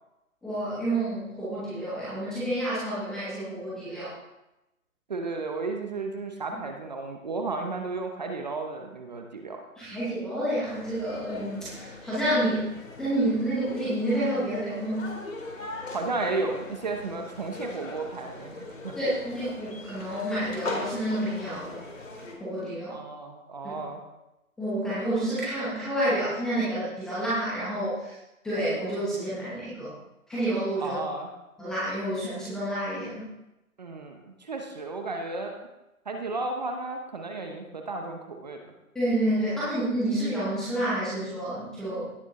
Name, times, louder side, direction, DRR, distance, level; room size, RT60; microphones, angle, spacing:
voice 1, 0.4-4.1 9.8-12.7 13.0-15.1 18.9-21.8 22.4-23.0 24.6-28.1 28.4-29.9 30.3-31.0 31.6-33.3 38.9-42.1, right 1 dB, ahead, -11 dB, 0.9 m, -29 dB
voice 2, 5.1-9.6 15.9-18.9 22.9-24.0 30.8-31.3 33.8-35.6 36.1-38.7, right 3 dB, 30° right, 4 dB, 0.9 m, -33 dB
sound 1, 10.6-22.4, left 2 dB, 60° left, 2.9 m, -40 dB
17.0 x 6.5 x 3.7 m, 0.94 s
figure-of-eight pair, 155°, 43 cm